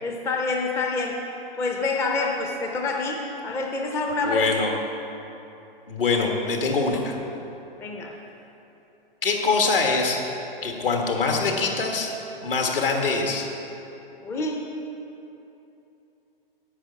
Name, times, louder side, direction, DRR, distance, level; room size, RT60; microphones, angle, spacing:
voice 1, 0.0-1.2 1.5-4.4 7.8-8.1 14.2-14.7, left 3 dB, 10° left, 1 dB, 0.5 m, -27 dB
voice 2, 4.2-4.7 5.9-7.2 9.2-10.2 10.6-12.1 12.4-13.5, left 4 dB, 70° left, 2 dB, 1.6 m, -23 dB
10.0 x 5.5 x 8.1 m, 2.9 s
figure-of-eight pair, 110°, 29 cm